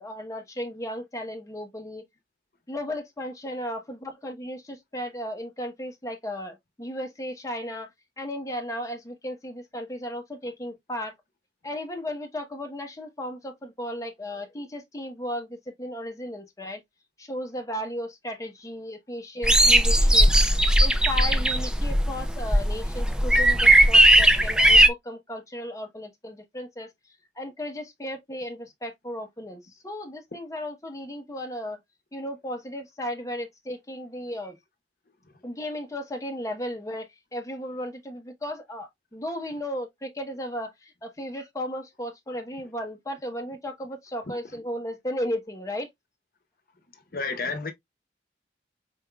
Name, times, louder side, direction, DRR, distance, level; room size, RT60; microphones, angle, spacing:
voice 1, 0.0-2.1 2.7-7.9 8.2-11.1 11.6-16.8 17.2-20.3 20.8-26.9 27.4-31.8 32.1-34.6 35.4-45.9, left 1 dB, 20° left, 0.9 m, -35 dB
sound 1, 19.4-24.9, right 1 dB, 5° right, 0.4 m, -18 dB
voice 2, 47.1-47.7, left 4 dB, 55° left, 0.8 m, -30 dB
4.5 x 3.6 x 2.2 m
head